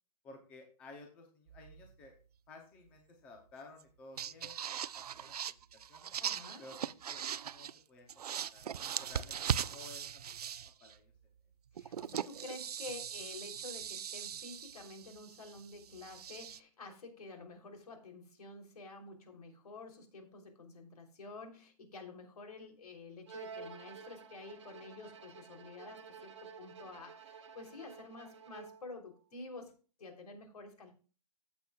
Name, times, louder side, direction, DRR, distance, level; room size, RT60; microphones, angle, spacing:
voice 1, 0.2-2.2 2.5-6.1 6.6-8.2 8.5-10.3 10.8-11.1, left 2 dB, 5° left, 3 dB, 0.6 m, -55 dB
sound 1, 1.5-2.1 3.8-3.9 4.2-7.8 8.1-11.0 11.8-16.6, right 8 dB, 70° right, 0.5 m, -40 dB
voice 2, 6.2-6.6 11.7-29.7 30.0-30.9, left 3 dB, 65° left, 4 dB, 3.2 m, -50 dB
Bowed string instrument, 23.3-29.0, right 5 dB, 45° right, 1.4 m, -51 dB
15.5 x 7.1 x 2.3 m, 0.36 s
hypercardioid pair, 175°, 21 cm